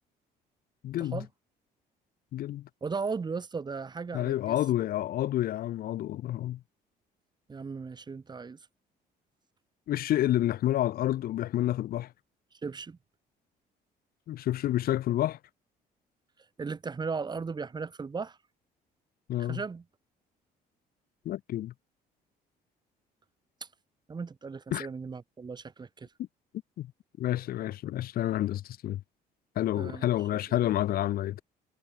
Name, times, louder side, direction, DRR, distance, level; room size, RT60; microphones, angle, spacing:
voice 1, 0.8-1.2 2.3-2.7 4.1-6.6 9.9-12.1 14.3-15.4 19.3-19.6 21.2-21.7 24.7-24.9 26.8-26.9 27.2-29.0 29.6-31.4, left 13 dB, 60° left, 0.8 m, -29 dB
voice 2, 2.8-4.6 7.5-8.6 12.6-13.0 16.6-18.4 19.4-19.8 23.6-23.7 24.1-26.1 29.8-30.1 30.5-30.7, right 5 dB, 25° right, 1.7 m, -36 dB
cardioid pair, 110°, 17 cm